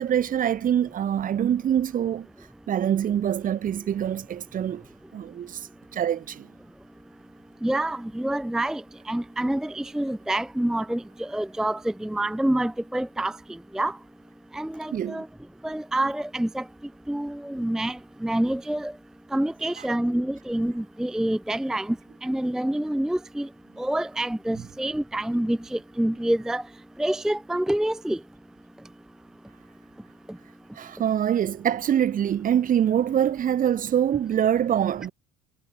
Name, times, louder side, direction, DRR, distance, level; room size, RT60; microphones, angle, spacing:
voice 1, 0.0-2.3 2.7-4.9 5.1-6.5 14.9-15.2 19.8-19.9 24.5-24.6 30.7-35.1, right 9 dB, 45° right, 1.8 m, -25 dB
voice 2, 7.6-13.4 13.7-14.0 14.5-15.3 15.6-16.7 17.1-18.9 19.3-22.0 22.2-23.5 23.8-26.6 27.0-28.2, right 1 dB, 5° right, 0.5 m, -27 dB
cardioid pair, 105°, 19 cm